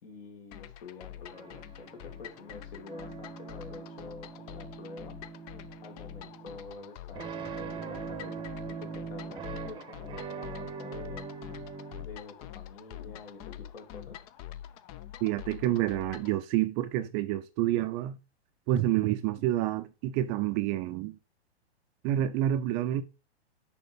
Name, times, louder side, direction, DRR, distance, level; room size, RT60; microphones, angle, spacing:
voice 1, 0.0-5.2 5.8-11.3 12.0-14.2, left 4 dB, 55° left, 2.4 m, -48 dB
sound 1, 0.5-16.4, left 12 dB, 35° left, 0.6 m, -46 dB
sound 2, 1.3-12.0, right 5 dB, 15° right, 0.9 m, -42 dB
voice 2, 15.2-18.2 18.7-21.2 22.0-23.0, right 13 dB, 30° right, 0.5 m, -28 dB
6.5 x 4.9 x 5.2 m
hypercardioid pair, 115°, 33 cm